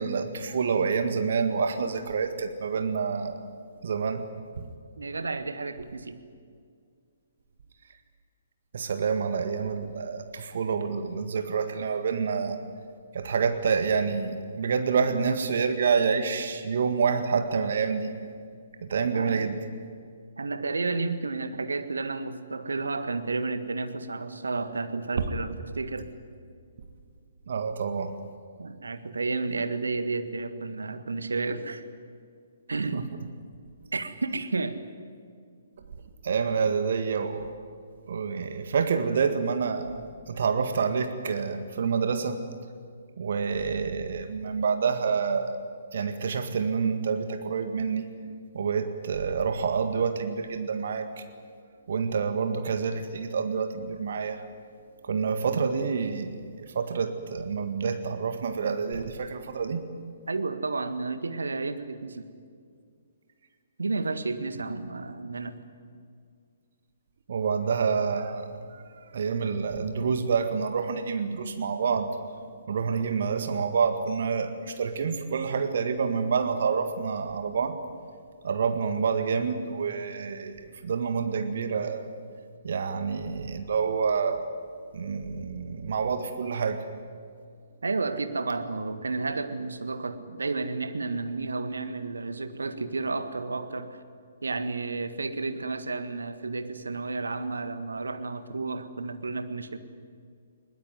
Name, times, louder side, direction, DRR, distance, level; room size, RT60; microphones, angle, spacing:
voice 1, 0.0-3.4 3.8-4.3 8.7-12.6 13.1-18.1 18.9-19.6 27.5-28.1 32.9-33.0 36.2-37.5 38.1-40.0 40.3-42.4 43.2-45.5 45.9-48.1 48.5-51.1 51.9-54.4 55.0-56.3 56.7-59.8 67.3-68.4 69.1-72.2 72.7-77.8 78.4-82.0 82.6-84.4 84.9-86.8, right 5 dB, 50° right, 8 dB, 1.8 m, -27 dB
voice 2, 5.0-6.2 19.1-19.5 20.4-26.1 28.6-31.8 32.7-33.1 33.9-34.8 60.3-62.2 63.8-65.5 87.8-94.0 94.4-99.8, right 3 dB, 70° right, 10 dB, 1.7 m, -31 dB
21.0 x 19.5 x 9.6 m, 2.2 s
figure-of-eight pair, 125°, 0 cm